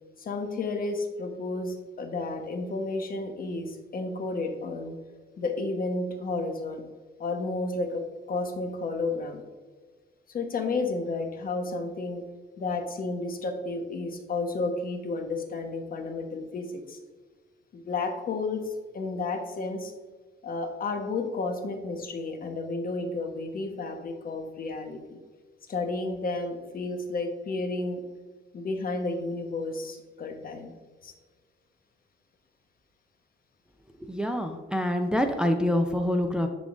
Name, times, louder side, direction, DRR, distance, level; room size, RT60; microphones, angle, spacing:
voice 1, 0.2-5.0 5.4-6.8 7.2-9.4 10.3-12.2 12.6-17.0 17.7-19.9 20.4-25.2 25.7-28.0 28.5-30.7 31.0-31.1, left 3 dB, 45° left, 5 dB, 1.1 m, -32 dB
voice 2, 34.0-36.5, left 1 dB, 5° right, 4 dB, 0.5 m, -26 dB
10.5 x 3.8 x 2.5 m, 1.4 s
cardioid pair, 90°, 20 cm